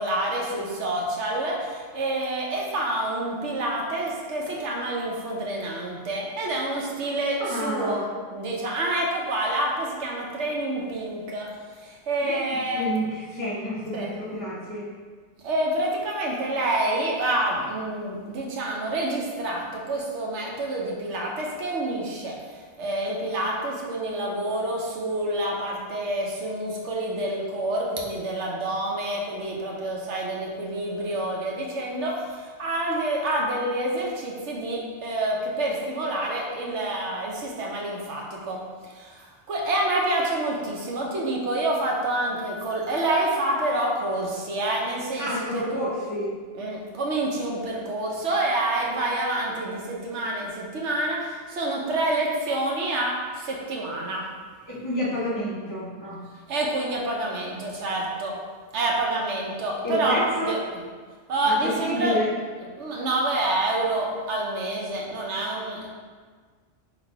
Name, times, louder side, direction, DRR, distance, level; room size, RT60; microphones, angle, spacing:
voice 1, 0.0-8.0 8.3-11.5 11.8-12.8 13.9-14.1 15.4-22.4 22.8-45.9 46.6-54.2 56.5-58.4 58.7-60.6 61.3-62.1 62.8-65.9, right 1 dB, 70° right, -2 dB, 1.1 m, -27 dB
voice 2, 7.4-8.0 12.2-14.9 45.2-46.3 54.7-56.2 59.8-60.5 61.4-62.3, left 1 dB, 20° left, -9 dB, 0.5 m, -29 dB
4.0 x 2.7 x 4.5 m, 1.6 s
omnidirectional pair, 1.2 m